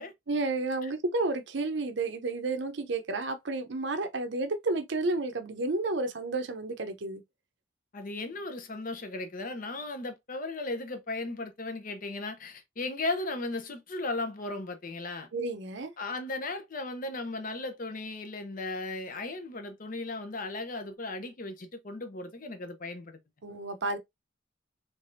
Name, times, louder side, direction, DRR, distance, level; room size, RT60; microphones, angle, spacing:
voice 1, 0.3-7.2 15.3-15.9 23.4-24.0, right 2 dB, 60° right, 0.7 m, -31 dB
voice 2, 7.9-15.3 16.0-23.2, left 2 dB, 40° left, 0.7 m, -36 dB
3.4 x 3.3 x 2.6 m
head